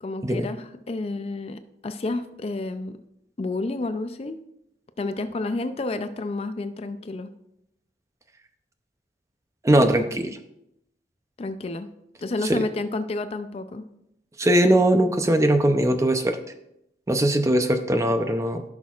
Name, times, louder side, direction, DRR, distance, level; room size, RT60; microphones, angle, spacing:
voice 1, 0.0-3.0 3.4-4.4 5.0-7.3 11.4-11.9 12.2-13.9, left 2 dB, 35° left, 10 dB, 0.4 m, -30 dB
voice 2, 9.6-10.4 12.5-12.6 14.4-16.4 17.1-18.6, right 1 dB, 15° right, 7 dB, 0.5 m, -20 dB
15.5 x 6.0 x 2.4 m, 0.82 s
head